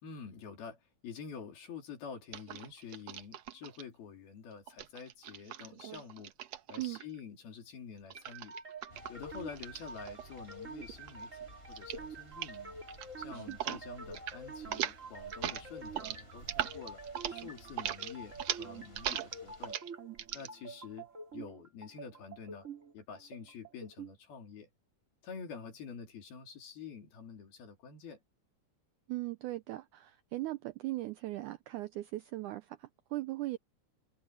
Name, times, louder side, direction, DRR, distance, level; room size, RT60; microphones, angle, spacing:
voice 1, 0.0-6.3 6.7-8.5 9.1-12.8 13.2-19.8 20.3-21.1 21.3-22.7 22.9-24.7 25.2-28.2, left 6 dB, 85° left, 5.5 m, -48 dB
sound 1, 2.3-3.8 4.7-7.2 8.1-10.6 10.9-11.3 11.7-12.1 12.3-12.6 12.9-13.8 14.0-14.4 14.6-20.5, right 11 dB, 70° right, 1.7 m, -40 dB
sound 2, 8.1-24.1, right 4 dB, 25° right, 2.2 m, -47 dB
Thunder / Rain, 8.9-19.7, left 1 dB, 15° left, 7.6 m, -57 dB
voice 2, 13.3-13.8 29.1-33.6, right 17 dB, 85° right, 1.7 m, -39 dB
omnidirectional pair, 4.2 m